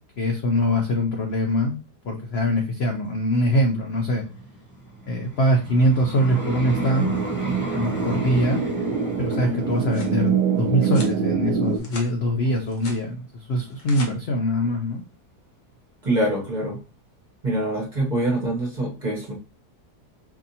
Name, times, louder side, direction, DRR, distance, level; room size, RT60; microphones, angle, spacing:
voice 1, 0.2-1.8 2.0-4.2 5.1-7.1 7.7-8.6 9.2-15.0, equal, 70° left, 3 dB, 0.6 m, -23 dB
Vehicle, 3.8-12.9 13.5-13.7, right 2 dB, 20° left, 0.3 m, -36 dB
sound 1, 6.3-11.8, right 6 dB, 75° right, 1.1 m, -25 dB
sound 2, 9.5-10.2 10.8-11.2 11.6-12.1 12.5-13.0 13.6-14.1, left 3 dB, 50° left, 1.3 m, -40 dB
voice 2, 16.0-16.8 17.4-19.3, right 1 dB, 35° right, -3 dB, 0.9 m, -24 dB
4.6 x 2.7 x 2.7 m, 0.33 s
omnidirectional pair, 1.8 m